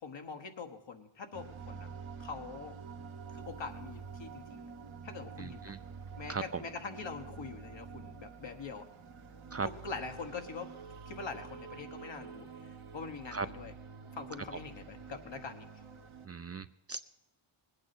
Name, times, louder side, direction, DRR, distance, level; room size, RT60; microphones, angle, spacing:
voice 1, 0.0-1.9 2.2-2.7 3.3-4.7 5.0-5.7 6.2-8.8 9.8-10.7 11.1-12.5 12.9-13.7 14.1-15.7, left 4 dB, 65° left, 5 dB, 1.5 m, -43 dB
sound 1, 1.3-16.3, right 5 dB, 85° right, 1.4 m, -48 dB
voice 2, 5.4-5.8 6.3-6.6 9.5-9.7 13.3-13.5 16.2-17.1, right 4 dB, 30° right, 11 dB, 0.4 m, -37 dB
20.0 x 8.6 x 6.0 m, 0.98 s
cardioid pair, 75°, 48 cm